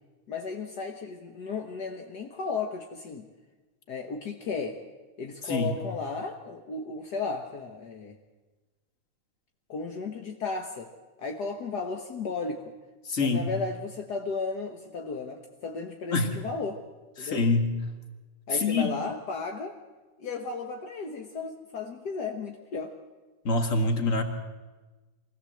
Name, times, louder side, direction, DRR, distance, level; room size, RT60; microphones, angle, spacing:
voice 1, 0.3-3.3 3.9-4.8 5.2-8.2 9.7-10.9 11.2-12.7 13.2-16.8 17.2-17.4 18.5-19.8 20.2-22.9, left 4 dB, 55° left, 4 dB, 1.1 m, -34 dB
voice 2, 13.1-13.5 16.1-16.3 17.2-17.7 18.5-18.9 23.4-24.2, left 3 dB, 30° left, 6 dB, 1.8 m, -25 dB
23.5 x 16.5 x 7.8 m, 1.3 s
omnidirectional pair, 3.3 m